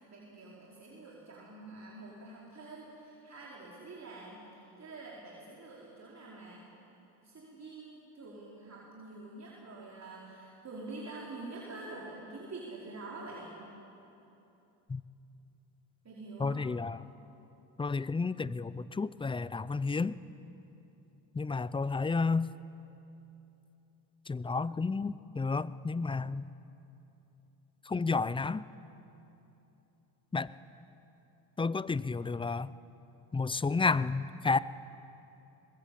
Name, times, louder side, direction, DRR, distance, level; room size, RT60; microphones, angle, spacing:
voice 1, 0.1-6.7 7.2-13.6 16.0-16.6, right 2 dB, 35° right, -5 dB, 4.9 m, -46 dB
voice 2, 16.4-17.1 17.8-20.1 21.3-22.5 24.3-26.5 27.9-28.6 30.3-30.5 31.6-32.7 33.3-34.6, left 4 dB, 10° left, 18 dB, 0.4 m, -31 dB
22.5 x 20.0 x 8.6 m, 2.9 s
supercardioid pair, 85°, 47 cm